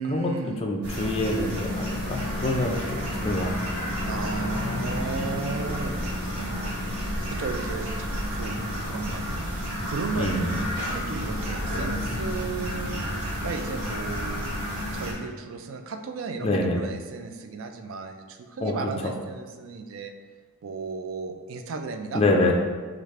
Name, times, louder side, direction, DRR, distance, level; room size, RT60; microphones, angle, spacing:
voice 1, 0.0-0.6 4.0-8.5 8.8-13.0 13.4-14.5 14.9-20.1 20.6-22.5, right 4 dB, 60° right, 5 dB, 0.4 m, -35 dB
voice 2, 0.6-3.7 10.1-10.6 16.4-16.8 18.6-18.8 19.0-19.1 22.1-22.5, left 2 dB, 25° left, 1 dB, 0.4 m, -26 dB
sound 1, 0.8-15.1, equal, 90° right, 1.2 m, -31 dB
Piano, 0.9-16.3, left 1 dB, 10° left, 1.4 m, -42 dB
4.9 x 2.4 x 3.2 m, 1.4 s
head